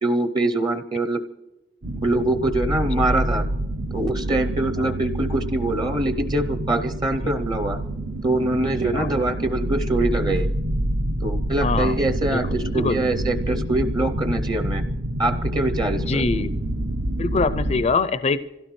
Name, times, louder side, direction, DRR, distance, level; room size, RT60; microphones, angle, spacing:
voice 1, 0.0-1.2 2.0-3.5 3.9-7.8 8.2-10.5 11.2-14.8 15.2-16.2, right 2 dB, 20° right, 9 dB, 0.6 m, -24 dB
sound 1, 1.8-17.8, right 1 dB, 75° right, 0.8 m, -27 dB
voice 2, 11.6-12.0 12.3-12.4 12.7-13.0 16.1-16.5 17.2-18.4, left 4 dB, 35° left, 14 dB, 0.4 m, -23 dB
25.5 x 16.5 x 3.2 m, 1.0 s
head